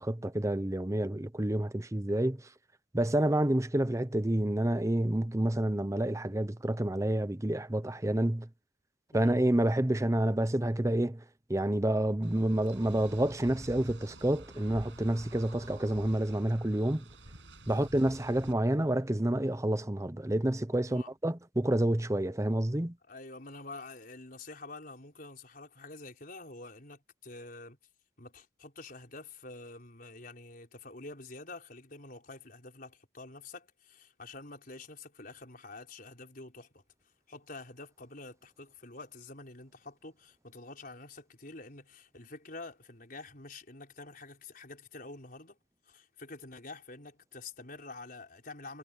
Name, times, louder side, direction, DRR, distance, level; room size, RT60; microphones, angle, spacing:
voice 1, 0.0-2.4 2.9-8.5 9.1-11.2 11.5-17.0 17.7-23.0, right 1 dB, 15° right, 0.8 m, -29 dB
voice 2, 9.1-9.4 17.7-17.9 20.9-21.1 23.1-27.8 28.2-36.8 37.3-45.6 45.8-48.8, left 3 dB, 50° left, 5.1 m, -47 dB
sound 1, 12.2-18.5, right 1 dB, 75° right, 7.9 m, -49 dB
head